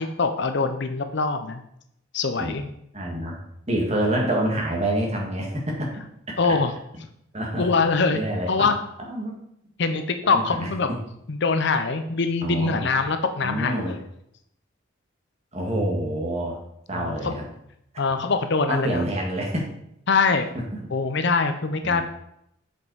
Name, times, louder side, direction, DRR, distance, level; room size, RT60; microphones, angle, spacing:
voice 1, 0.0-1.6 2.1-2.6 6.4-6.7 7.6-8.2 8.5-8.8 9.8-10.9 11.3-14.0 16.9-17.4 18.0-19.1 20.1-20.5 20.9-22.0, left 4 dB, 55° left, 8 dB, 0.6 m, -23 dB
voice 2, 2.9-3.4 3.7-5.9 7.3-7.7 8.1-8.7 9.1-9.3 10.2-10.7 12.4-12.9 13.4-13.9 15.5-16.6 16.9-17.5 18.7-19.7 20.5-20.6 21.8-22.0, right 1 dB, 30° right, -1 dB, 1.9 m, -27 dB
7.6 x 5.3 x 4.7 m, 0.76 s
head